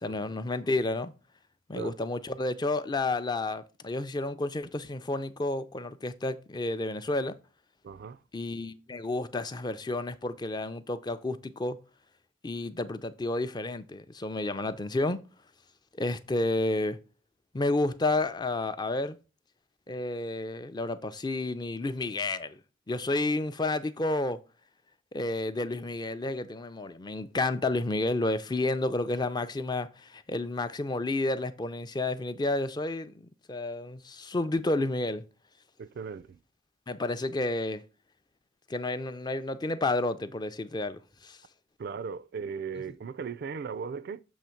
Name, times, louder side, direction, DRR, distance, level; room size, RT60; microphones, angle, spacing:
voice 1, 0.0-1.1 1.7-7.4 8.3-11.8 12.4-15.2 16.0-17.0 17.5-19.2 19.9-22.6 22.9-24.4 25.1-33.1 33.5-35.2 36.9-37.8 38.7-41.4, left 2 dB, 20° left, 0.4 m, -31 dB
voice 2, 7.8-8.2 35.8-36.4 41.8-44.2, right 6 dB, 55° right, 0.3 m, -37 dB
7.3 x 3.1 x 5.8 m
head